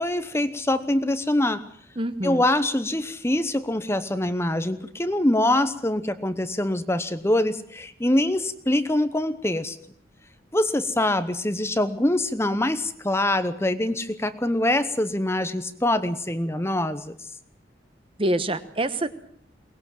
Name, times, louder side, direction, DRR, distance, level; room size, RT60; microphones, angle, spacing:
voice 1, 0.0-1.6 2.2-9.8 10.5-17.1, left 1 dB, 15° left, 11 dB, 0.9 m, -24 dB
voice 2, 2.0-2.4 18.2-19.1, right 1 dB, 30° right, 12 dB, 1.2 m, -25 dB
23.0 x 19.5 x 7.6 m, 0.63 s
head